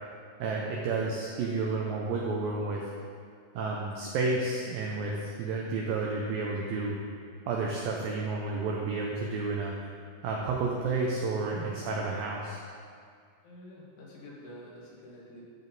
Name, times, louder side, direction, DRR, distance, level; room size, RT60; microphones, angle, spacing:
voice 1, 0.4-2.9 3.5-7.0 7.5-9.8 10.2-12.6, right 3 dB, 80° right, -2 dB, 2.1 m, -31 dB
voice 2, 13.4-15.4, left 1 dB, 65° left, -6 dB, 3.8 m, -48 dB
12.0 x 7.3 x 4.0 m, 2.1 s
omnidirectional pair, 5.1 m